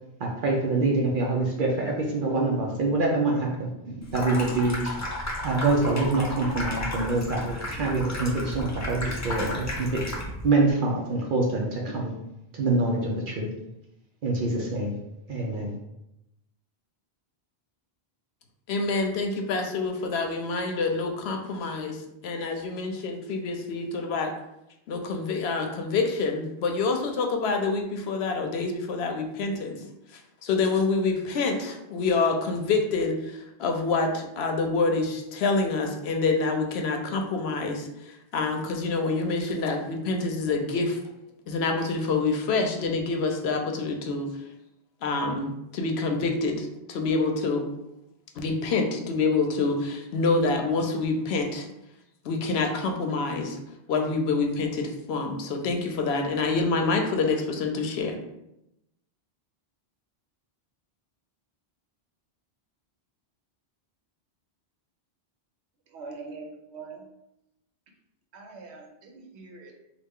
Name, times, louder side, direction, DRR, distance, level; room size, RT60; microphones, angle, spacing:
voice 1, 0.2-5.0 5.4-10.0 10.4-12.1 12.5-13.5 14.2-15.0 15.3-15.7, right 2 dB, 60° right, -1 dB, 0.7 m, -25 dB
Water tap faucet / Sink (filling or washing), 4.0-10.5, left 1 dB, 25° left, 0.4 m, -33 dB
voice 2, 18.7-24.3 24.9-29.8 30.4-41.0 41.5-44.3 45.0-47.7 48.4-51.7 52.2-53.6 53.9-58.2, left 3 dB, 80° left, 4 dB, 0.8 m, -27 dB
voice 3, 65.9-67.0 68.3-69.8, right 4 dB, 85° right, 1 dB, 1.0 m, -43 dB
3.2 x 2.4 x 3.5 m, 0.87 s
omnidirectional pair, 1.1 m